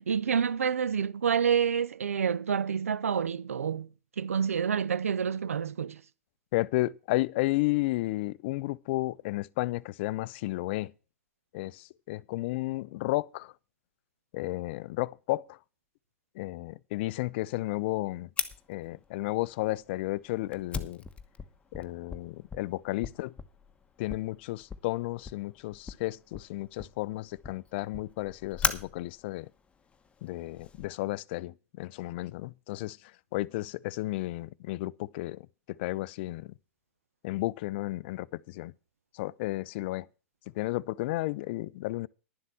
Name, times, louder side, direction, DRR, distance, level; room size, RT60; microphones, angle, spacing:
voice 1, 0.0-3.9 4.2-6.0, right 7 dB, 75° right, 0.7 m, -28 dB
voice 2, 6.5-10.9 11.5-13.5 14.3-15.6 16.4-18.3 18.7-21.0 21.7-23.3 24.0-29.5 30.2-33.0 33.3-35.5 35.8-36.5 37.2-38.7 39.1-40.1 40.6-42.1, left 19 dB, 50° left, 0.5 m, -33 dB
Fire, 18.4-30.9, left 5 dB, 15° left, 1.1 m, -39 dB
11.5 x 7.4 x 7.0 m
figure-of-eight pair, 100°, 8 cm